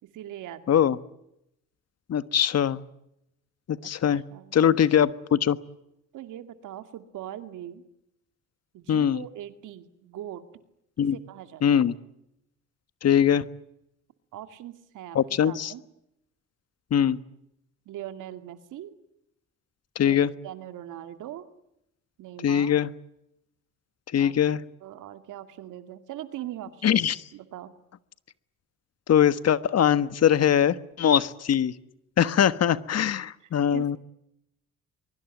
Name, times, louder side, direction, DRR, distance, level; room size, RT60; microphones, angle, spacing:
voice 1, 0.0-0.9 3.8-3.9 4.3-4.7 6.1-7.8 8.7-10.5 11.1-11.8 14.3-15.2 15.4-15.8 17.9-18.9 20.1-21.4 22.2-22.8 24.2-24.3 24.8-27.0 27.3-27.7 33.7-34.0, right 12 dB, 85° right, 9 dB, 2.3 m, -41 dB
voice 2, 0.7-1.0 2.1-2.8 3.7-4.2 4.5-5.6 8.9-9.2 11.0-11.2 11.6-11.9 13.0-13.5 15.1-15.7 16.9-17.2 19.9-20.3 22.4-22.9 24.1-24.6 26.8-27.2 29.1-31.7 32.2-34.0, left 9 dB, 55° left, 14 dB, 1.4 m, -22 dB
24.0 x 23.0 x 9.1 m, 0.83 s
cardioid pair, 90°, 30 cm